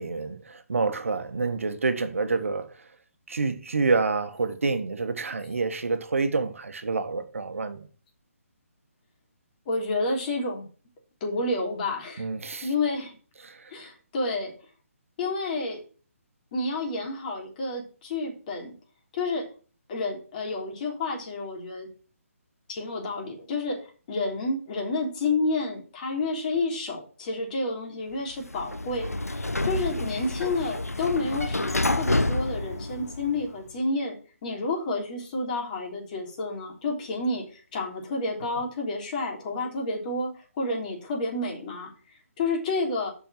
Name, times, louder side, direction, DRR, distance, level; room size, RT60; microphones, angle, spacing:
voice 1, 0.0-2.8 3.3-7.9 12.2-12.7 13.4-13.7, right 4 dB, 65° right, 1.2 m, -28 dB
voice 2, 9.6-10.6 11.2-12.3 12.6-13.1 13.7-14.5 15.2-15.8 16.5-18.7 19.1-19.5 19.9-21.9 22.7-34.1 34.4-41.9 42.4-43.1, left 2 dB, 30° left, 3.4 m, -30 dB
Sliding door, 28.3-33.5, left 2 dB, 90° left, 0.9 m, -29 dB
6.9 x 6.1 x 7.4 m
figure-of-eight pair, 145°, 8 cm